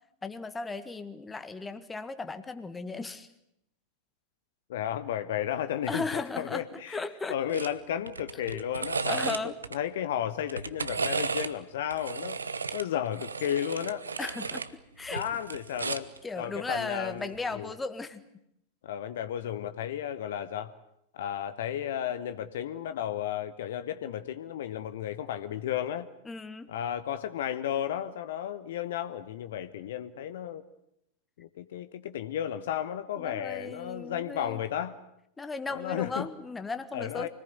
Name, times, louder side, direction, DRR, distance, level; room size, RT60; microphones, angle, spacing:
voice 1, 0.2-3.3 5.9-7.6 8.5-8.6 9.1-9.6 14.2-15.2 16.2-18.2 26.3-26.7 33.2-34.6 35.4-37.3, left 3 dB, 10° left, 10 dB, 1.7 m, -36 dB
voice 2, 4.7-6.0 6.4-7.0 7.3-12.4 12.7-14.1 15.1-17.7 18.8-20.7 21.1-26.1 26.7-30.6 31.4-35.0 35.7-36.3 36.9-37.3, left 10 dB, 55° left, 11 dB, 1.1 m, -33 dB
sound 1, 7.5-7.7 8.1-9.8 10.4-11.5 11.9-14.7 15.0-16.2 17.3-17.5, right 4 dB, 75° right, 1.0 m, -34 dB
25.5 x 19.5 x 9.4 m, 0.79 s
figure-of-eight pair, 90°, 0 cm